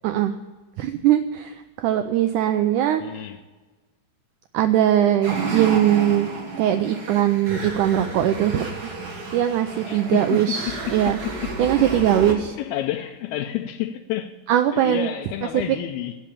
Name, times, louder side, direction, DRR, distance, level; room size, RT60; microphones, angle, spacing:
voice 1, 0.0-0.4 0.8-3.0 4.5-6.3 6.6-8.7 9.3-11.2 11.6-12.6 14.5-15.1, right 11 dB, 85° right, 1.8 m, -20 dB
voice 2, 3.0-3.4 9.9-10.8 11.4-11.5 12.3-14.4 14.7-16.2, left 12 dB, 90° left, 2.5 m, -30 dB
sound 1, 5.2-12.3, right 3 dB, 45° right, 1.3 m, -31 dB
17.0 x 6.1 x 8.5 m
omnidirectional pair, 4.2 m